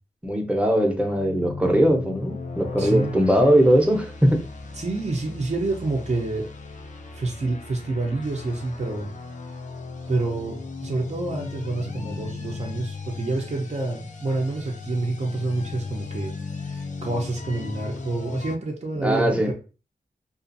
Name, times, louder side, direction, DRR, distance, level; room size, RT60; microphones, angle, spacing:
voice 1, 0.2-4.5 19.0-19.5, equal, 10° right, 2 dB, 0.8 m, -20 dB
sound 1, 0.7-18.6, left 4 dB, 50° left, 0.5 m, -36 dB
voice 2, 2.8-3.2 4.7-6.5 7.1-9.1 10.1-16.4 16.6-19.5, right 2 dB, 45° right, -1 dB, 0.7 m, -28 dB
2.5 x 2.4 x 2.6 m, 0.34 s
cardioid pair, 50°, 16 cm